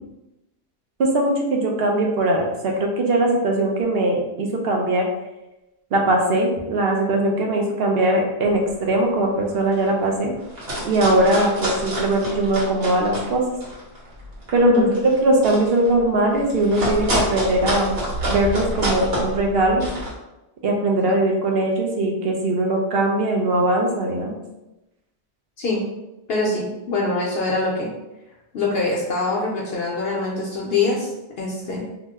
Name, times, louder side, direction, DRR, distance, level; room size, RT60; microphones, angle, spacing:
voice 1, 1.0-5.1 5.9-10.3 10.8-13.4 14.5-14.7 15.2-18.0 18.3-19.9 20.6-24.4, right 1 dB, 65° right, 1 dB, 0.8 m, -20 dB
sound 1, 8.6-8.9 9.3-9.4 9.6-10.0 10.4-13.3 13.6-20.1, equal, 90° right, 1.3 m, -27 dB
voice 2, 14.6-14.9 25.6-25.8 26.3-27.9 28.5-31.8, left 3 dB, 65° left, -3 dB, 0.8 m, -24 dB
2.9 x 2.1 x 3.4 m, 0.96 s
omnidirectional pair, 1.1 m